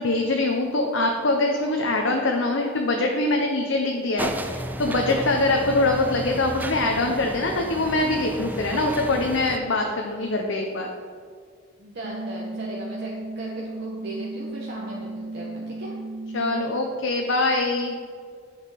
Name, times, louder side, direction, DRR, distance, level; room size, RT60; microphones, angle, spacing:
voice 1, 0.0-10.9 16.3-18.0, left 2 dB, 70° left, 2 dB, 0.9 m, -23 dB
sound 1, 4.2-9.6, right 1 dB, 10° right, 0.5 m, -33 dB
voice 2, 5.5-5.9 11.8-15.9, right 1 dB, 55° right, -5 dB, 1.4 m, -37 dB
sound 2, 12.0-17.0, right 2 dB, 85° right, 0.8 m, -35 dB
10.0 x 6.5 x 5.1 m, 2.1 s
head